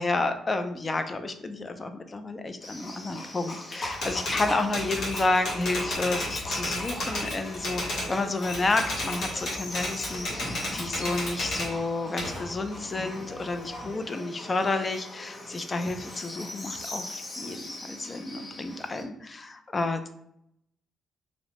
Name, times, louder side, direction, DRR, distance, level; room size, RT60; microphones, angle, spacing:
voice 1, 0.0-20.1, left 2 dB, 30° left, 8 dB, 0.3 m, -30 dB
Livestock farm animals working animals, 2.6-19.0, left 1 dB, 45° left, 0.7 m, -41 dB
Typewriter, 3.8-8.1 8.4-11.7 12.2-13.8, left 1 dB, 65° left, 1.1 m, -32 dB
2.7 x 2.0 x 2.9 m, 0.74 s
cardioid pair, 90°, 0 cm